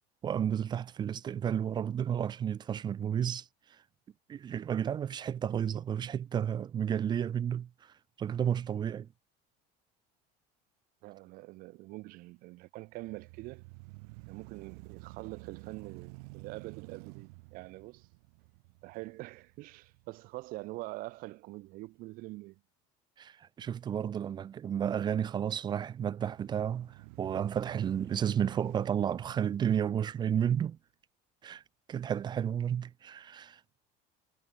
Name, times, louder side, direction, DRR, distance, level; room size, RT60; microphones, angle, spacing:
voice 1, 0.2-3.4 4.3-7.7 8.2-9.1 23.2-30.8 31.4-31.6 31.9-33.6, right 9 dB, 20° right, 0.9 m, -32 dB
voice 2, 11.0-13.6 14.3-18.1 18.8-22.6, right 21 dB, 45° right, 1.2 m, -44 dB
sound 1, 12.9-21.1 21.5-21.6 26.2-30.7, right 33 dB, 70° right, 2.7 m, -51 dB
cardioid pair, 170°, 19 cm